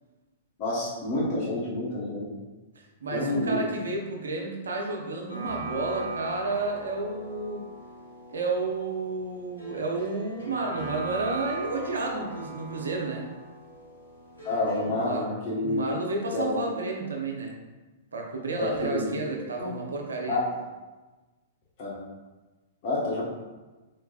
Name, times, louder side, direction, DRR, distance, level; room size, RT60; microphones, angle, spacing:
voice 1, 0.6-2.2 3.1-3.6 14.4-15.8 16.3-16.8 18.6-19.2 19.6-19.7 20.3-20.5 21.8-21.9 22.8-23.2, left 2 dB, 45° left, -6 dB, 1.2 m, -29 dB
voice 2, 2.8-7.7 8.3-13.3 14.8-15.3 15.6-17.5 18.1-20.4, right 3 dB, 70° right, 1 dB, 0.7 m, -31 dB
sound 1, 5.3-14.9, right 2 dB, 85° left, 1.1 m, -39 dB
3.9 x 3.2 x 2.4 m, 1.2 s
figure-of-eight pair, 105°, 0 cm